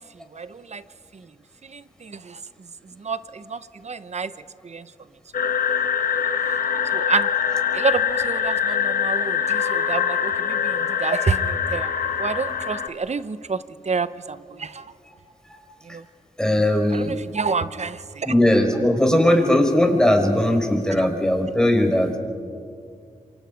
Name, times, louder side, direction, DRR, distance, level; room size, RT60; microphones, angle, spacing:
voice 1, 0.3-0.8 1.1-1.2 1.7-2.4 3.0-4.3 4.6-4.9 6.9-7.3 7.7-11.9 12.2-14.8 15.9-16.0 16.9-18.3, right 5 dB, 50° right, 14 dB, 0.9 m, -28 dB
sound 1, 5.3-12.9, left 7 dB, 75° left, 1.3 m, -23 dB
voice 2, 16.4-17.1 18.2-22.2, left 1 dB, 5° left, 3 dB, 5.3 m, -19 dB
27.5 x 24.5 x 5.3 m, 2.3 s
cardioid pair, 50°, 15 cm